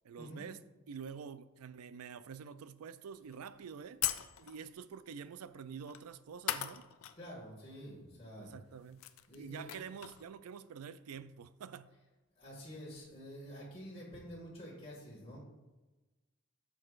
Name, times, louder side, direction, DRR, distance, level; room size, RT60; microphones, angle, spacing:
voice 1, 0.0-4.0 4.4-6.9 8.4-9.1 9.3-11.9, right 6 dB, 85° right, 0.4 m, -47 dB
sound 1, 3.3-3.4 4.0-4.7 5.9-6.1 6.5-7.2 7.5-7.6 8.5-8.6 8.8-10.3, left 12 dB, 75° left, 0.4 m, -38 dB
voice 2, 7.2-8.5 9.3-9.7 12.4-15.4, equal, 25° left, 1.8 m, -48 dB
8.9 x 6.4 x 2.5 m
head